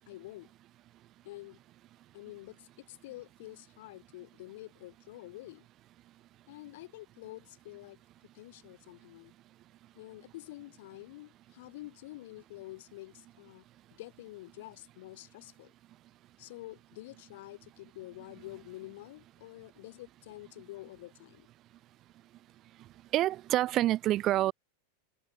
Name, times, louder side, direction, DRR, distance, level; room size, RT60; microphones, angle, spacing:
voice 1, 0.1-0.5 1.2-1.6 2.1-5.6 6.5-8.0 8.3-9.3 10.0-13.6 13.9-15.7 16.4-21.5, left 18 dB, 60° left, 4.6 m, -48 dB
voice 2, 23.1-24.5, right 14 dB, 30° right, 0.8 m, -27 dB
supercardioid pair, 155°, 0 cm